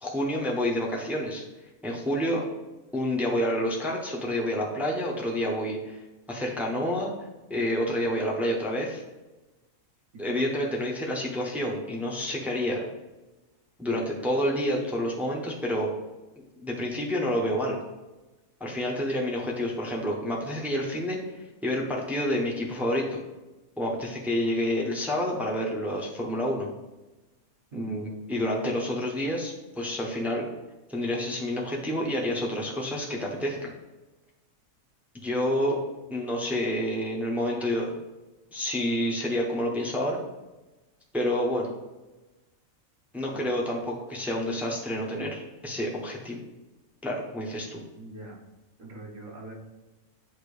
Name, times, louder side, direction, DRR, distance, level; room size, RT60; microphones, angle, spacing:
voice 1, 0.0-1.4 1.8-2.4 2.9-6.0 6.3-7.1 7.5-9.0 10.2-12.8 13.8-15.9 16.6-17.8 18.6-21.2 21.6-23.2 23.8-26.7 27.7-30.5 30.9-33.7 35.1-35.8 36.1-38.0 38.5-40.2 41.1-41.7 43.1-46.4 47.0-47.8, equal, ahead, -2 dB, 1.0 m, -28 dB
voice 2, 10.1-10.8 27.7-27.9 43.3-43.4 48.0-48.4 48.8-49.5, right 3 dB, 65° right, -1 dB, 1.8 m, -42 dB
8.8 x 3.0 x 5.0 m, 1.1 s
omnidirectional pair, 1.4 m